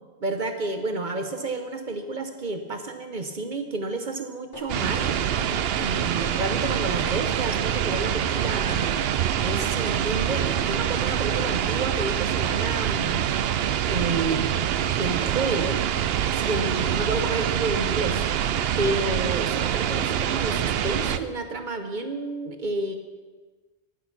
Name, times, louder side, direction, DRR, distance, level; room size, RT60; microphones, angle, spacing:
voice 1, 0.2-9.0 9.4-13.2 13.9-14.7 15.0-15.8 16.3-18.2 18.8-23.0, right 3 dB, 50° right, 7 dB, 1.0 m, -30 dB
sound 1, 4.5-4.7 4.9-5.1 5.4-5.5 5.8-5.9 6.2-6.3 6.6-6.7 7.1-7.2 7.5-7.6 7.9-8.0 8.3-8.4 8.7-8.8 9.1-9.2 9.5-9.6 9.8-10.0 10.3-10.4 10.7-10.8 11.1-11.2, left 2 dB, 65° left, 3.6 m, -41 dB
sound 2, 4.7-21.2, right 9 dB, 75° right, 0.8 m, -25 dB
11.5 x 9.8 x 6.0 m, 1.4 s
omnidirectional pair, 1.1 m